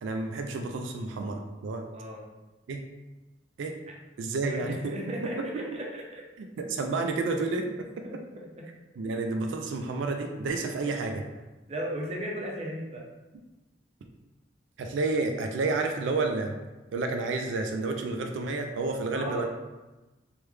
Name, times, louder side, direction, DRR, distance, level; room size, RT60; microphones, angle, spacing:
voice 1, 0.0-1.9 2.7-2.8 3.6-3.8 4.2-5.6 6.4-8.2 9.0-11.2 14.8-16.6 16.9-19.5, right 3 dB, 90° right, 4 dB, 0.3 m, -30 dB
voice 2, 1.9-2.2 4.4-6.2 8.0-8.2 8.5-8.6 9.1-9.2 11.7-13.1 19.1-19.5, equal, 35° right, -2 dB, 0.5 m, -36 dB
3.3 x 2.2 x 3.1 m, 1.1 s
head